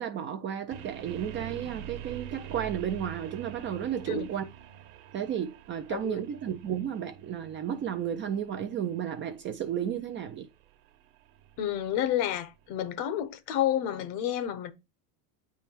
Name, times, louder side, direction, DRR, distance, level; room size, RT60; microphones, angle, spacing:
voice 1, 0.0-4.4 5.1-10.5, right 9 dB, 25° right, 0.4 m, -33 dB
sound 1, 0.7-12.7, right 9 dB, 65° right, 1.2 m, -46 dB
voice 2, 11.6-14.7, left 11 dB, 60° left, 1.0 m, -30 dB
8.7 x 3.5 x 4.5 m
supercardioid pair, 120°, 50 cm